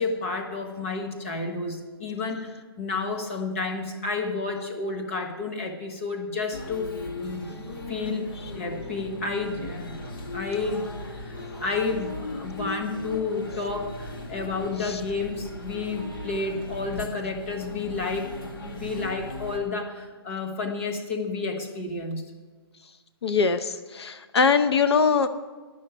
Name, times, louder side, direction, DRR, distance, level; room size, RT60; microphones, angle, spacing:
voice 1, 0.0-6.9 7.1-7.5 7.9-8.2 8.5-9.9 10.3-10.8 11.2-11.3 11.6-18.3 18.7-22.2, left 3 dB, 30° left, 3 dB, 1.3 m, -30 dB
sound 1, 6.5-19.6, left 1 dB, 55° left, 1.9 m, -38 dB
voice 2, 23.2-25.3, left 5 dB, 75° left, 10 dB, 0.7 m, -22 dB
10.5 x 6.4 x 9.1 m, 1.4 s
hypercardioid pair, 180°, 14 cm